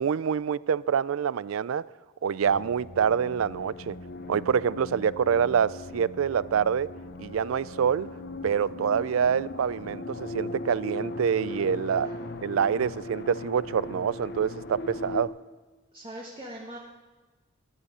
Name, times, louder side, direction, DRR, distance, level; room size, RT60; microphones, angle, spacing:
voice 1, 0.0-1.9 2.2-4.0 4.3-6.9 7.2-8.1 8.4-12.1 12.4-15.3, right 7 dB, 80° right, 0.4 m, -26 dB
sound 1, 2.4-15.2, left 2 dB, 55° left, 0.9 m, -39 dB
voice 2, 11.9-12.3 15.9-16.8, right 1 dB, 25° right, 1.4 m, -42 dB
12.5 x 10.5 x 8.5 m
head